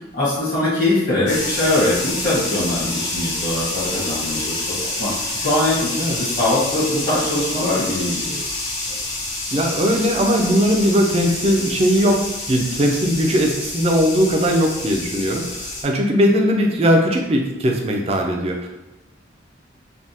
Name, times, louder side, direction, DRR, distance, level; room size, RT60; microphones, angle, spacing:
voice 1, 0.1-8.5, left 1 dB, 45° left, -9 dB, 1.2 m, -22 dB
sound 1, 1.3-15.8, left 2 dB, 70° left, 0.7 m, -28 dB
voice 2, 9.5-18.7, equal, 30° right, 1 dB, 0.4 m, -19 dB
3.3 x 2.3 x 2.7 m, 0.97 s
head